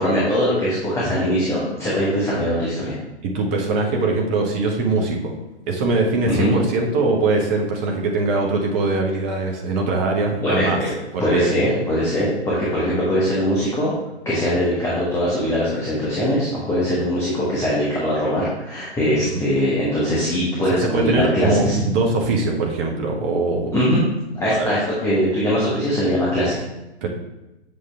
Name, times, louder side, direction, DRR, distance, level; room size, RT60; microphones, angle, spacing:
voice 1, 0.0-2.9 6.3-6.6 10.4-10.9 11.2-13.9 14.2-21.8 23.7-24.0 24.3-26.6, equal, 10° left, -8 dB, 1.3 m, -21 dB
voice 2, 3.2-5.3 5.7-10.8 11.1-11.5 19.2-19.3 20.8-23.7 24.5-24.7 27.0-27.1, right 3 dB, 10° right, 1 dB, 0.4 m, -21 dB
7.7 x 6.1 x 3.4 m, 0.97 s
figure-of-eight pair, 125°, 34 cm